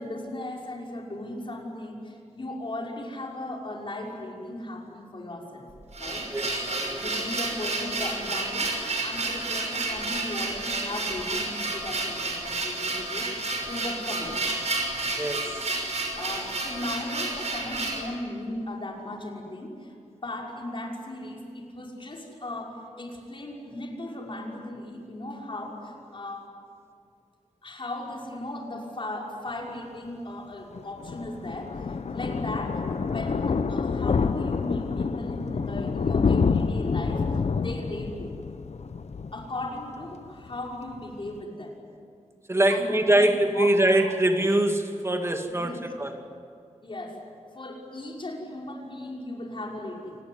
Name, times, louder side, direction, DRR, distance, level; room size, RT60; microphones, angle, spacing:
voice 1, 0.0-5.6 6.0-6.3 6.7-8.7 9.0-13.3 13.6-14.5 16.2-19.9 20.2-26.5 27.6-37.3 37.6-38.3 39.3-41.7 42.7-44.1 45.5-45.9 46.8-47.2 47.5-50.2, left 1 dB, 45° left, -1 dB, 5.9 m, -37 dB
sound 1, 5.7-18.0, right 2 dB, 65° right, 6.2 m, -30 dB
voice 2, 15.2-15.5 42.5-46.2, right 1 dB, 20° right, 4 dB, 2.5 m, -23 dB
Thunder, 30.7-40.1 40.4-40.7 41.0-41.1 41.3-41.4, left 5 dB, 65° left, 0.9 m, -27 dB
29.0 x 19.5 x 9.7 m, 2.4 s
wide cardioid pair, 105°, 12 cm